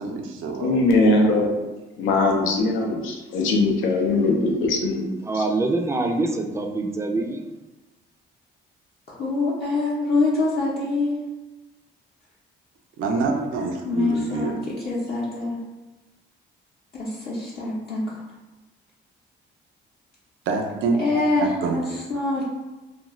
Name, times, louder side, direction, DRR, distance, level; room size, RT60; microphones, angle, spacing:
voice 1, 0.0-0.8 13.0-14.5 20.5-21.0 21.4-21.8, right 4 dB, 80° right, 2 dB, 0.5 m, -26 dB
voice 2, 0.6-1.5 2.0-5.1 5.3-5.4, left 2 dB, 85° left, 1 dB, 0.5 m, -21 dB
voice 3, 5.2-7.5, right 2 dB, 15° right, 2 dB, 0.4 m, -25 dB
voice 4, 9.1-11.2 13.8-15.6 16.9-18.2 21.0-22.4, left 3 dB, 50° left, -7 dB, 0.7 m, -25 dB
2.4 x 2.3 x 3.0 m, 1.1 s
cardioid pair, 90°, 20 cm